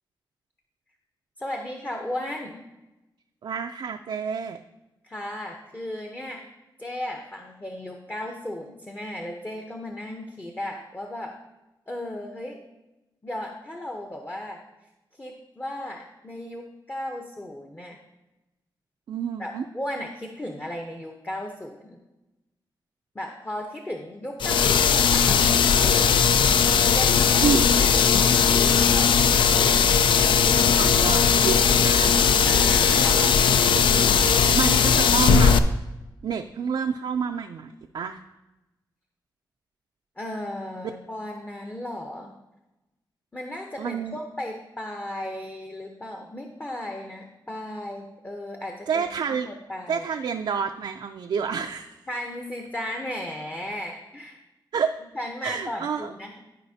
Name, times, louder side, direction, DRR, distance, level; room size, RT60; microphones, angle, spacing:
voice 1, 1.4-2.6 5.0-6.4 6.8-11.3 11.9-12.6 13.2-14.6 15.2-18.0 19.4-22.0 23.1-25.4 25.8-26.2 26.9-27.8 28.2-29.8 32.4-33.6 40.2-42.3 43.3-50.1 52.1-54.4 55.1-56.4, left 1 dB, 20° left, 2 dB, 0.7 m, -35 dB
voice 2, 3.4-4.6 19.1-19.6 27.4-27.8 30.7-32.1 32.9-33.4 33.7-35.6 36.2-38.2 43.8-44.2 48.9-49.5 49.9-51.9 54.7-55.0 55.4-56.1, right 6 dB, 70° right, 5 dB, 0.4 m, -29 dB
sound 1, 24.4-35.6, left 7 dB, 85° left, 0.4 m, -19 dB
13.0 x 4.9 x 2.7 m, 1.0 s
wide cardioid pair, 100°, 8 cm